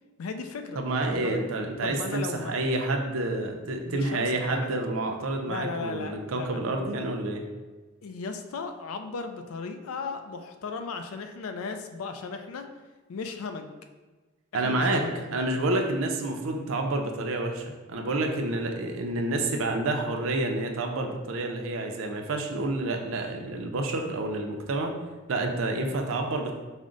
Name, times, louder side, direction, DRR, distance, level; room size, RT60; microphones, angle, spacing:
voice 1, 0.2-0.8 1.2-1.4 1.8-2.6 3.8-4.7 5.5-6.6 8.0-12.7 13.1-13.7 14.5-15.1, left 4 dB, 85° left, 7 dB, 0.4 m, -36 dB
voice 2, 0.8-7.4 14.5-15.0 15.3-24.9 25.3-26.5, right 2 dB, 75° right, 3 dB, 0.5 m, -29 dB
4.8 x 2.1 x 3.7 m, 1.3 s
head